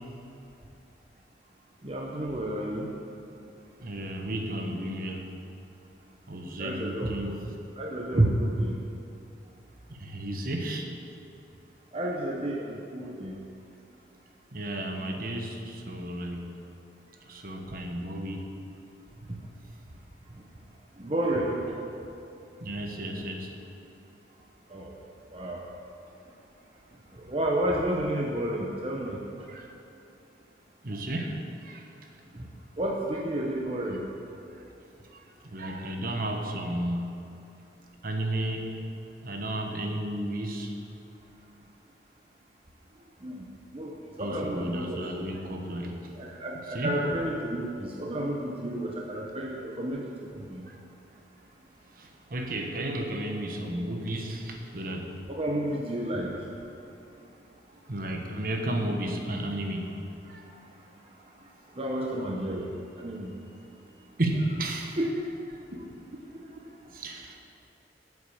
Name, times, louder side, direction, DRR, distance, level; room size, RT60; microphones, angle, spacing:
voice 1, 1.8-2.9 6.6-7.5 7.8-8.8 11.9-13.4 21.0-21.8 24.7-24.9 25.3-25.6 27.3-29.2 32.3-32.5 32.8-34.0 43.2-43.4 43.7-43.9 44.2-45.1 46.2-50.6 55.3-56.3 61.8-62.7 63.0-63.3 65.0-65.1, right 1 dB, 30° right, -2 dB, 0.9 m, -30 dB
voice 2, 3.8-5.3 6.3-7.4 9.9-10.9 14.5-16.5 17.3-18.5 22.6-23.5 29.5-29.7 30.8-31.9 35.1-37.0 38.0-38.8 39.2-40.7 44.2-46.1 46.6-47.0 50.7-50.8 52.0-55.1 57.9-59.9 60.3-60.4 64.2-65.0 65.9-67.4, right 1 dB, 50° right, 2 dB, 1.2 m, -33 dB
9.5 x 8.1 x 7.1 m, 2.8 s
head